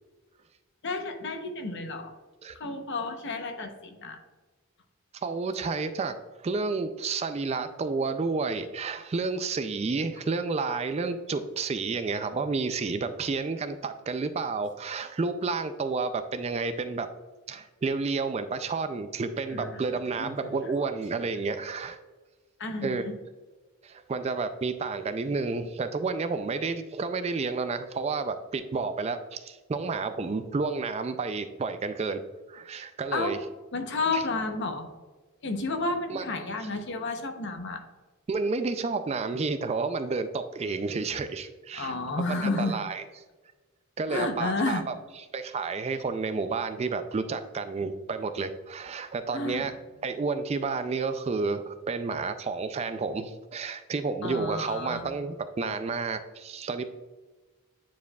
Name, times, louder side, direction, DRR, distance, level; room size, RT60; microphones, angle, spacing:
voice 1, 0.8-2.1 2.5-4.2 19.5-19.8 20.2-20.5 22.6-23.1 33.1-33.4 33.7-34.9 35.4-37.8 41.7-42.8 44.1-44.8 49.3-49.7 54.2-55.1, left 3 dB, 55° left, 6 dB, 0.8 m, -31 dB
voice 2, 5.2-6.1 6.4-17.1 17.5-22.0 22.8-23.0 23.8-32.2 32.5-33.4 34.1-34.2 36.1-36.2 38.3-41.9 42.4-43.1 44.0-44.9 45.3-49.7 50.0-56.9, right 4 dB, 30° right, 9 dB, 0.3 m, -30 dB
9.1 x 4.9 x 2.3 m, 1.3 s
head